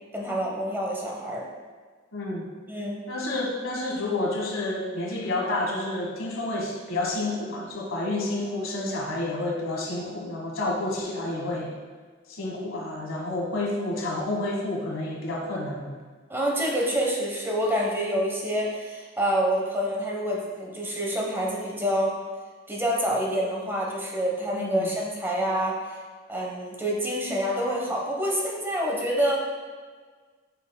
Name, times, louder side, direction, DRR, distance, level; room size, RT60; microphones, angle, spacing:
voice 1, 0.1-1.4 2.7-3.0 16.3-22.2 22.7-25.8 26.3-29.4, equal, 10° right, -3 dB, 1.0 m, -27 dB
voice 2, 2.1-2.5 3.1-11.7 12.3-15.9 24.5-24.9, left 2 dB, 90° left, -2 dB, 1.4 m, -29 dB
8.4 x 5.4 x 2.2 m, 1.5 s
head